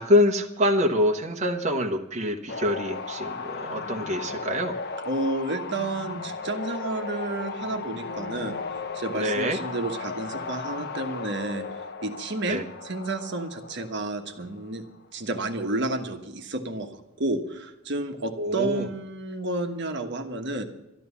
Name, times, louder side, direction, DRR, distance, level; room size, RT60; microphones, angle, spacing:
voice 1, 0.0-4.7 9.1-9.6 12.5-12.6 18.4-18.9, left 1 dB, 35° right, 2 dB, 1.2 m, -25 dB
sound 1, 2.5-14.9 18.7-18.9, left 4 dB, 55° left, 0.8 m, -36 dB
voice 2, 5.0-11.7 12.0-14.8 15.1-16.9 17.2-20.6, right 2 dB, 55° right, 6 dB, 1.3 m, -31 dB
12.5 x 12.0 x 7.1 m, 0.94 s
head